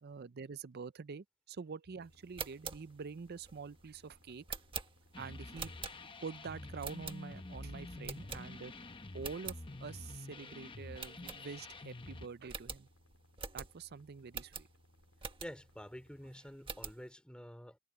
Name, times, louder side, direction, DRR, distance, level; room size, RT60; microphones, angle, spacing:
voice 1, 0.0-4.4 5.2-5.7 6.0-8.7 9.1-9.6 9.8-12.9 13.5-14.7, right 5 dB, 50° right, 0.5 m, -46 dB
sound 1, 1.8-16.3, left 1 dB, 85° left, 3.6 m, -67 dB
sound 2, 2.2-6.3 6.8-7.6 8.0-8.8 9.1-9.6 10.1-10.2 10.4-10.5 11.0-11.9 12.1-12.2 12.5-15.8 16.2-17.1, right 6 dB, 25° right, 1.5 m, -46 dB
sound 3, 5.1-12.3, left 2 dB, 25° left, 0.9 m, -48 dB
voice 2, 15.4-17.8, equal, 5° left, 3.4 m, -49 dB
head